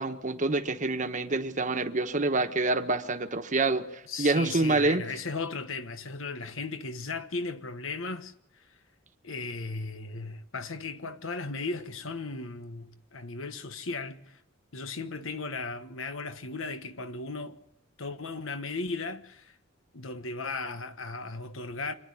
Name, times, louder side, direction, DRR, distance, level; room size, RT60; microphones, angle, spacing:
voice 1, 0.0-3.9 4.2-5.0, right 3 dB, 40° right, 1.3 m, -27 dB
voice 2, 4.0-8.3 9.2-14.4 14.7-17.6 18.0-19.5 19.9-21.9, left 3 dB, 90° left, 1.3 m, -36 dB
26.0 x 10.0 x 9.9 m
head